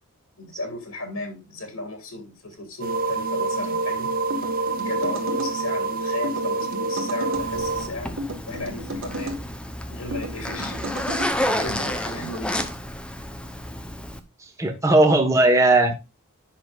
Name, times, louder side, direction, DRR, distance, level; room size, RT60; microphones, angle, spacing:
voice 1, 0.4-4.1 4.8-8.2 8.5-9.4 9.9-10.8 11.5-12.7, left 2 dB, 75° left, 2.5 m, -34 dB
sound 1, 2.8-7.9, right 3 dB, 40° right, 0.9 m, -27 dB
sound 2, 4.3-5.5 6.2-7.5 8.2-9.4 10.1-11.3, equal, 60° right, 1.7 m, -33 dB
Zipper (clothing), 7.3-14.2, left 1 dB, 5° left, 0.8 m, -30 dB
voice 2, 14.6-16.0, right 2 dB, 15° right, 1.4 m, -17 dB
10.0 x 6.3 x 2.5 m
head